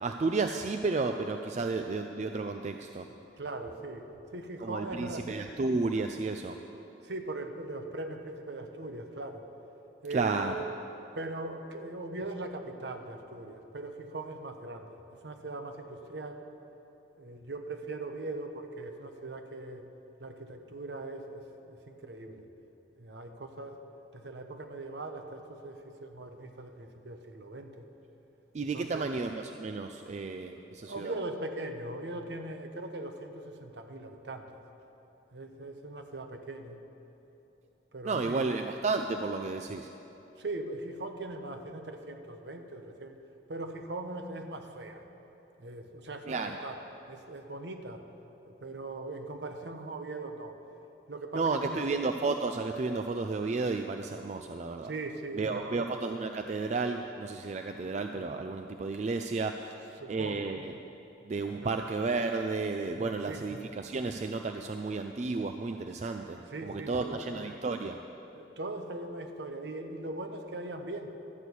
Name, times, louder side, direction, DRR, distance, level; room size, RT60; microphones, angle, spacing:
voice 1, 0.0-3.1 4.6-6.6 10.1-10.5 28.5-31.1 38.0-39.9 46.3-46.6 51.3-54.9 55.4-59.5 60.1-60.7 61.3-68.0, right 3 dB, 40° right, 5 dB, 0.3 m, -32 dB
voice 2, 3.4-5.3 7.0-9.4 10.0-10.6 11.1-16.5 17.2-19.8 20.2-22.4 23.0-23.8 24.1-27.8 28.7-29.1 30.4-34.5 35.3-36.8 37.9-38.5 40.4-43.2 43.5-45.0 45.6-46.8 47.1-48.1 48.5-50.6 51.1-51.9 54.8-55.9 60.0-60.6 61.5-61.7 62.9-63.4 66.0-66.1 66.4-67.3 68.3-71.1, right 2 dB, 65° right, 6 dB, 0.9 m, -40 dB
12.5 x 6.2 x 8.3 m, 2.9 s
head